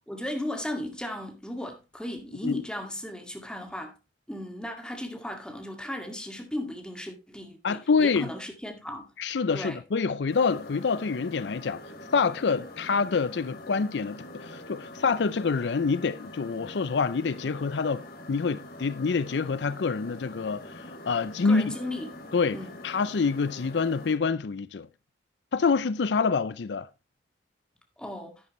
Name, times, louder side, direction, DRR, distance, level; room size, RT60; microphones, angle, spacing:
voice 1, 0.1-3.9 4.3-9.1 9.5-9.8 21.4-22.2 22.5-22.8 28.0-28.4, left 1 dB, 5° left, 2.1 m, -36 dB
voice 2, 7.6-8.3 9.2-11.8 12.1-21.8 22.3-22.6 22.8-24.9 25.5-26.9, left 5 dB, 75° left, 0.5 m, -26 dB
sound 1, 10.3-24.2, left 1 dB, 60° left, 2.7 m, -44 dB
11.0 x 9.3 x 3.1 m
head